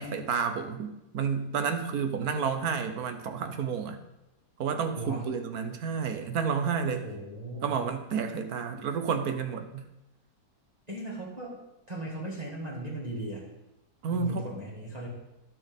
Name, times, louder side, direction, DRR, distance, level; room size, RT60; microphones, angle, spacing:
voice 1, 0.0-4.0 4.6-7.0 7.6-9.9 14.0-14.5, right 6 dB, 75° right, 8 dB, 1.4 m, -30 dB
voice 2, 5.0-5.3 7.0-7.8 10.9-11.6 11.9-13.4 14.1-15.1, right 1 dB, 25° right, -5 dB, 1.9 m, -37 dB
11.0 x 6.0 x 5.2 m, 0.92 s
omnidirectional pair, 1.6 m